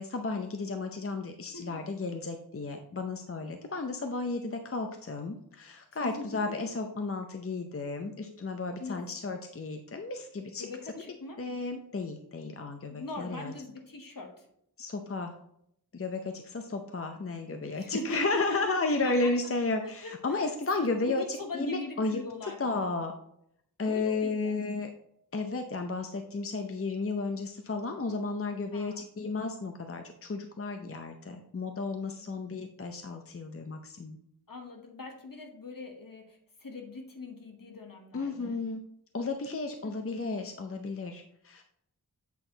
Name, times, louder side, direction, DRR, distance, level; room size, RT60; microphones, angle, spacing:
voice 1, 0.0-10.7 11.4-13.5 14.8-15.3 15.9-22.2 22.6-23.1 23.8-24.9 25.3-34.2 38.1-38.8 39.1-41.6, left 3 dB, 35° left, 5 dB, 0.6 m, -33 dB
voice 2, 1.5-1.8 6.0-6.7 8.8-9.0 10.6-11.4 12.9-14.5 17.8-19.3 19.8-23.1 23.8-24.6 28.7-29.1 32.2-32.4 34.5-38.5 39.8-39.9, left 2 dB, 60° left, 3 dB, 1.3 m, -41 dB
8.3 x 4.3 x 3.9 m, 0.72 s
wide cardioid pair, 70°, 37 cm